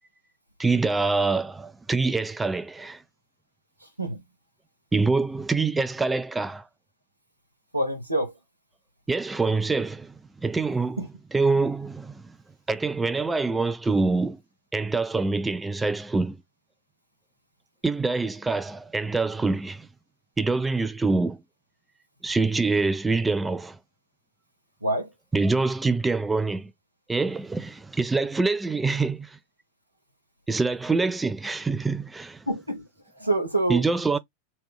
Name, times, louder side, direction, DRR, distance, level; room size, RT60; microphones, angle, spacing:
voice 1, 0.6-3.0 4.9-6.7 9.1-11.0 11.3-12.3 12.7-14.4 14.7-16.4 17.8-19.9 20.4-21.4 22.2-23.8 25.3-26.7 27.1-29.4 30.5-32.5 33.7-34.2, right 3 dB, 10° right, 0.3 m, -25 dB
voice 2, 3.8-4.2 7.7-8.3 11.0-11.1 24.8-25.1 32.5-32.9 33.2-33.8, right 2 dB, 90° right, 1.0 m, -26 dB
3.1 x 2.2 x 3.5 m
figure-of-eight pair, 90°, 0 cm